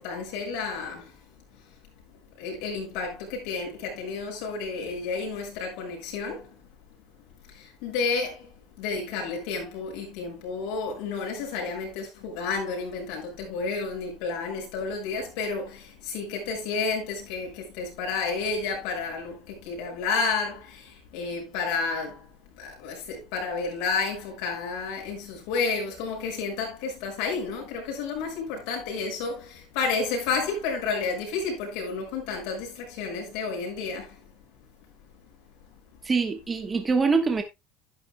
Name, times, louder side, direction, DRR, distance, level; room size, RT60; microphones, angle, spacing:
voice 1, 0.0-1.7 2.4-6.6 7.4-34.3 35.0-35.1, left 4 dB, 70° left, 6.0 m, -31 dB
voice 2, 36.0-37.4, right 4 dB, 15° right, 1.2 m, -24 dB
11.5 x 10.0 x 2.2 m
cardioid pair, 155°, 0 cm